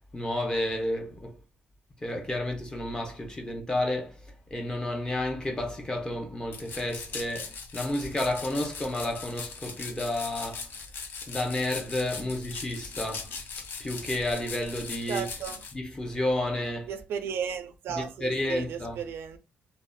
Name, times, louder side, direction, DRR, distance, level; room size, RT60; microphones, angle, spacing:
voice 1, 0.1-1.4 2.0-4.2 4.5-10.7 11.3-13.3 13.8-15.2 15.7-16.9 17.9-19.0, left 1 dB, 20° left, 0.6 m, -31 dB
sound 1, 6.5-15.7, left 5 dB, 60° left, 0.4 m, -40 dB
voice 2, 15.1-15.6 16.9-19.4, right 7 dB, 80° right, 0.3 m, -34 dB
2.7 x 2.1 x 2.2 m
cardioid pair, 105°, 4 cm